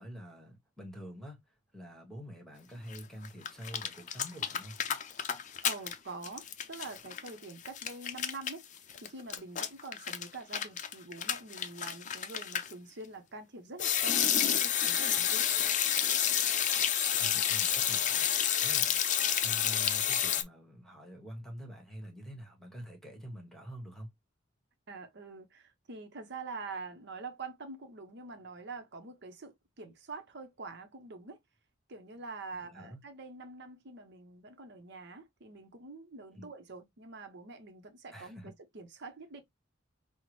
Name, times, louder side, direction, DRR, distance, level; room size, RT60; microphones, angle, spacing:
voice 1, 0.0-1.4 1.7-4.8 17.2-18.3 18.6-24.1 32.5-33.0 36.3-36.5 38.1-38.5, equal, ahead, 1.2 m, -46 dB
sound 1, 2.9-3.0 3.2-6.0 6.2-12.7 13.8-20.4, left 9 dB, 40° left, 0.5 m, -30 dB
voice 2, 5.6-8.6 9.0-15.5 24.9-31.4 31.9-39.4, right 3 dB, 60° right, 0.8 m, -45 dB
5.5 x 2.1 x 3.1 m
head